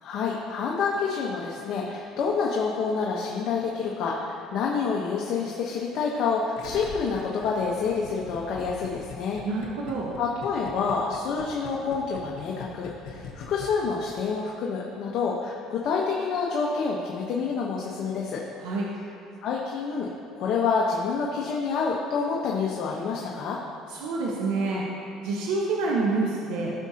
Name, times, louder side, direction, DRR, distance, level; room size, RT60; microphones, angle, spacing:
voice 1, 0.0-9.4 10.2-18.4 19.4-20.1 20.3-23.6, left 5 dB, 60° left, -3 dB, 1.0 m, -28 dB
Gurgling, 6.6-14.1 14.4-14.5, left 6 dB, 85° left, 1.0 m, -41 dB
voice 2, 9.4-10.1 18.6-18.9 23.9-24.8 25.2-26.7, right 3 dB, 85° right, -3 dB, 1.1 m, -27 dB
15.5 x 6.3 x 2.9 m, 2.6 s
cardioid pair, 110°, 0 cm